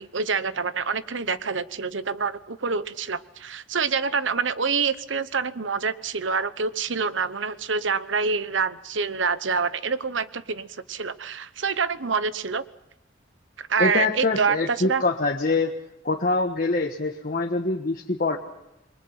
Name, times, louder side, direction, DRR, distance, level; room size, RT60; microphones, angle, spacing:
voice 1, 0.0-12.6 13.6-15.0, right 5 dB, 90° right, 14 dB, 1.0 m, -26 dB
voice 2, 13.8-15.7 16.0-18.4, left 3 dB, 50° left, 2 dB, 1.4 m, -24 dB
28.5 x 23.0 x 5.8 m, 0.87 s
head